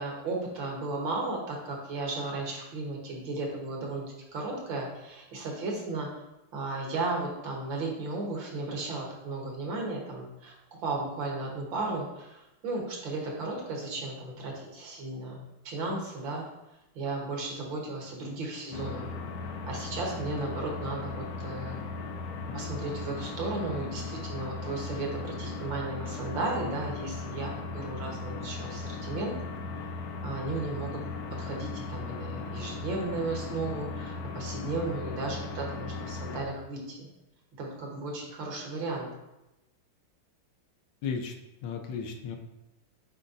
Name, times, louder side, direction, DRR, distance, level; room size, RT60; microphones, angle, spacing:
voice 1, 0.0-6.1 6.5-10.5 10.8-16.4 17.0-19.1 19.7-21.8 22.5-29.4 30.2-37.0 37.6-39.1, right 2 dB, 65° right, -1 dB, 2.0 m, -35 dB
sound 1, 18.7-36.4, left 3 dB, 85° left, 0.8 m, -37 dB
voice 2, 41.0-41.3 41.6-42.4, left 6 dB, 70° left, 4 dB, 1.2 m, -34 dB
7.5 x 4.8 x 2.7 m, 0.93 s
omnidirectional pair, 2.4 m